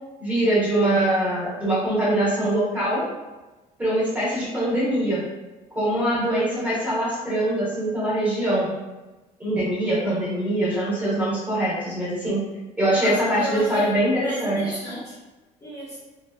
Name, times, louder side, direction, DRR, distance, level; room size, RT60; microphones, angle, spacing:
voice 1, 0.2-3.0 3.8-5.2 5.7-8.7 9.4-12.4 12.8-14.6, right 1 dB, 10° right, -8 dB, 1.1 m, -23 dB
voice 2, 13.0-15.2 15.6-16.0, right 1 dB, 20° left, -9 dB, 0.8 m, -34 dB
2.9 x 2.8 x 2.3 m, 1.2 s
cardioid pair, 155°, 14 cm